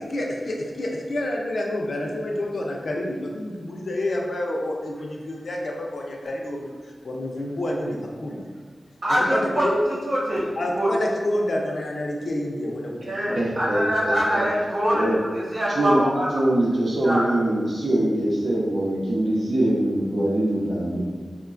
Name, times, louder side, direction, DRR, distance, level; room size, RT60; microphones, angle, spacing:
voice 1, 0.0-6.8 7.0-8.4 9.3-9.8 10.6-13.4, left 1 dB, 70° left, -1 dB, 0.4 m, -28 dB
voice 2, 9.0-9.7 10.0-10.9 13.1-16.3 17.0-17.2, equal, 85° right, -10 dB, 1.0 m, -24 dB
voice 3, 13.4-14.4 14.9-15.1 15.7-16.0 16.3-21.0, right 1 dB, 70° right, -5 dB, 0.6 m, -23 dB
3.0 x 2.1 x 2.4 m, 1.5 s
wide cardioid pair, 80°, 0 cm